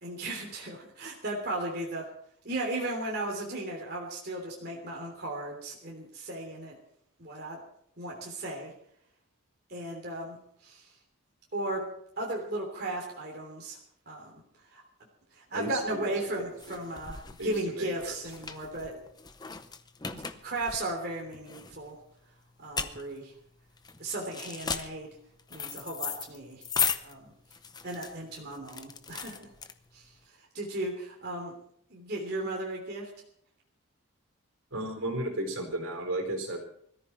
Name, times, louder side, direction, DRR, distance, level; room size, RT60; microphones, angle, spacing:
voice 1, 0.0-2.1 2.4-6.8 7.2-7.6 8.0-8.7 9.7-10.4 10.6-10.9 11.5-11.9 12.2-13.8 14.0-14.3 14.7-14.8 15.3-18.9 20.1-22.0 22.6-23.3 24.0-25.1 25.5-26.6 27.0-27.3 27.8-29.5 29.9-30.1 30.5-31.5 31.9-33.1, right 1 dB, 45° right, -1 dB, 3.3 m, -36 dB
voice 2, 15.5-16.1 16.7-16.8 17.4-18.1 18.9-19.0 34.7-36.6, right 1 dB, 75° right, 3 dB, 4.4 m, -34 dB
sound 1, 15.8-30.2, left 6 dB, 20° left, 0.7 m, -37 dB
20.5 x 14.0 x 4.5 m, 0.66 s
head